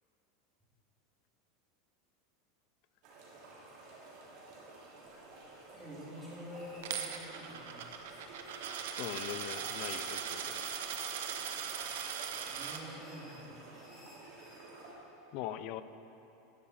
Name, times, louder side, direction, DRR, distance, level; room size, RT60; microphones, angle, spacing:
sound 1, 3.0-14.9, right 2 dB, 50° right, 2.7 m, -52 dB
sound 2, 5.1-5.8 6.1-7.7 8.1-9.3 9.6-14.7, left 1 dB, 10° left, 2.2 m, -60 dB
voice 1, 5.8-8.2 12.4-14.1, equal, 5° right, -8 dB, 2.1 m, -48 dB
Coin (dropping), 6.8-12.8, right 8 dB, 75° right, 0.8 m, -39 dB
voice 2, 9.0-10.7 15.3-15.8, left 12 dB, 45° left, 12 dB, 0.4 m, -41 dB
11.5 x 5.6 x 7.1 m, 3.0 s
supercardioid pair, 165°, 0 cm